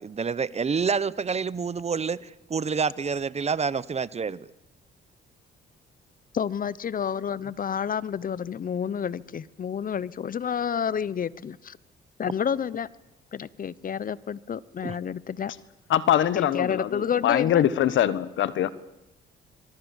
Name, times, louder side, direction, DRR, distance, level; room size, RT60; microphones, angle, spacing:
voice 1, 0.0-4.5 14.8-15.0, right 5 dB, 35° right, 19 dB, 0.9 m, -28 dB
voice 2, 6.3-11.8 12.2-12.9 13.3-15.5 16.3-17.6, left 7 dB, 45° left, 20 dB, 0.9 m, -29 dB
voice 3, 15.9-18.7, left 11 dB, 75° left, 16 dB, 1.4 m, -23 dB
26.5 x 23.0 x 7.3 m, 0.94 s
cardioid pair, 90°, 20 cm